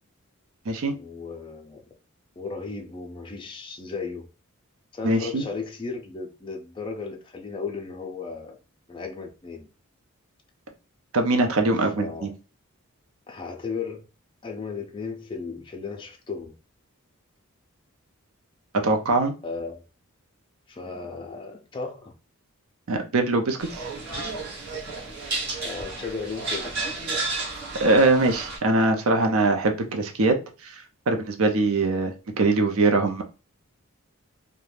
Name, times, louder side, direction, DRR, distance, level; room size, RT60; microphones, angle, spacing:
voice 1, 0.9-1.8 2.4-4.3 4.9-8.6 8.9-9.7 12.0-12.3 13.3-14.1 14.4-16.5 19.4-19.8 20.7-22.1 25.6-26.7, left 4 dB, 20° left, 0.3 m, -35 dB
voice 2, 5.0-5.4 11.1-12.3 18.7-19.3 22.9-23.8 27.8-30.4 30.6-30.8 31.1-33.2, right 2 dB, 75° right, 0.5 m, -22 dB
sound 1, 23.6-28.6, right 3 dB, 50° right, 0.9 m, -32 dB
2.4 x 2.1 x 3.2 m
head